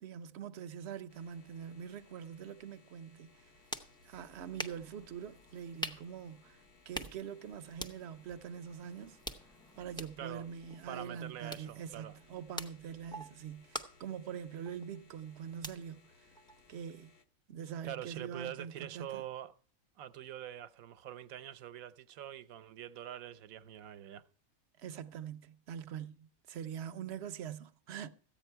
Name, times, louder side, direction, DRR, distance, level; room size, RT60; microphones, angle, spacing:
voice 1, 0.0-3.5 4.0-9.2 9.8-16.1 16.7-17.1 17.5-19.2 24.8-28.1, right 8 dB, 60° right, 0.8 m, -44 dB
sound 1, 1.1-17.2, left 4 dB, 50° left, 1.0 m, -65 dB
sound 2, 3.3-17.0, equal, 5° left, 0.4 m, -48 dB
voice 2, 10.9-12.2 17.8-19.5 20.0-24.2, right 11 dB, 85° right, 1.1 m, -45 dB
14.5 x 9.2 x 4.5 m
omnidirectional pair, 1.4 m